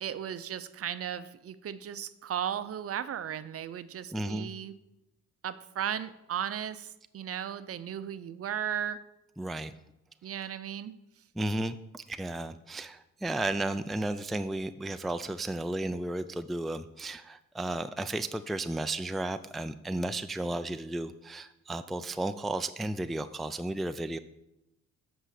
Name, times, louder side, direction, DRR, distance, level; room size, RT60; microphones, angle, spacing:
voice 1, 0.0-4.7 5.4-9.0 10.2-10.9, right 9 dB, 50° right, 14 dB, 0.6 m, -36 dB
voice 2, 4.1-4.5 9.4-9.7 11.3-24.2, right 1 dB, ahead, 10 dB, 0.4 m, -33 dB
7.8 x 6.2 x 6.6 m, 0.90 s
cardioid pair, 90°, 30 cm